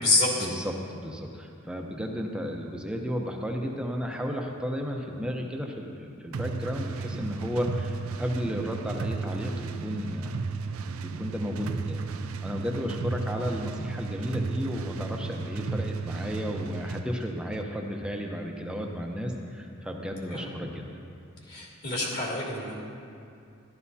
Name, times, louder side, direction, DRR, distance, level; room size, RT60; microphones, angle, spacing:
voice 1, 0.4-10.4 11.2-12.0 12.4-20.9, equal, 5° right, 1 dB, 0.7 m, -33 dB
sound 1, 6.3-17.1, right 4 dB, 80° right, 0.4 m, -34 dB
voice 2, 21.5-22.8, left 2 dB, 50° left, -5 dB, 2.7 m, -27 dB
13.5 x 12.0 x 2.8 m, 2.5 s
head